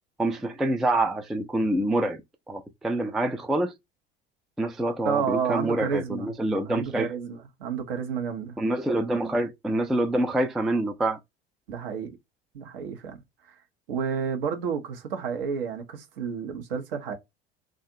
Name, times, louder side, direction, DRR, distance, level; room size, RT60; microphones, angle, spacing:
voice 1, 0.2-2.2 2.5-3.7 4.6-7.1 8.6-11.2, right 1 dB, ahead, 0.3 m, -26 dB
voice 2, 5.0-6.3 6.7-8.6 11.7-12.2 12.5-13.2 13.5-13.6 13.9-17.2, right 6 dB, 65° right, 0.9 m, -30 dB
2.4 x 2.4 x 2.7 m
figure-of-eight pair, 70°, 30 cm